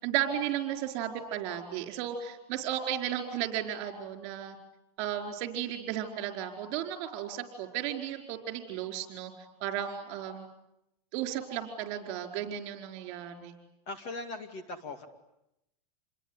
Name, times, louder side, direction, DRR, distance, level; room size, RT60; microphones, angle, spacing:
voice 1, 0.0-4.6 5.0-9.3 9.6-10.5 11.1-13.5, right 10 dB, 35° right, 5 dB, 4.8 m, -34 dB
voice 2, 13.9-15.1, left 2 dB, 30° left, 7 dB, 2.4 m, -39 dB
28.0 x 22.0 x 9.9 m, 0.85 s
supercardioid pair, 165°, 21 cm